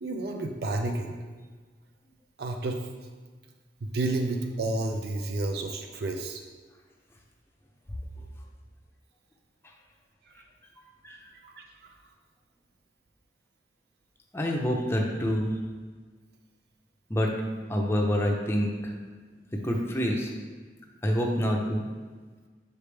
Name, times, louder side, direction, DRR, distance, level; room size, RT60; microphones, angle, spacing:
voice 1, 0.0-1.2 2.4-2.9 3.8-6.4 11.4-11.9, right 2 dB, 60° right, 3 dB, 0.5 m, -31 dB
voice 2, 14.3-15.5 17.1-17.3 17.7-18.9 19.6-20.3 21.0-21.8, equal, 15° left, 0 dB, 0.6 m, -27 dB
5.6 x 5.1 x 3.3 m, 1.4 s
head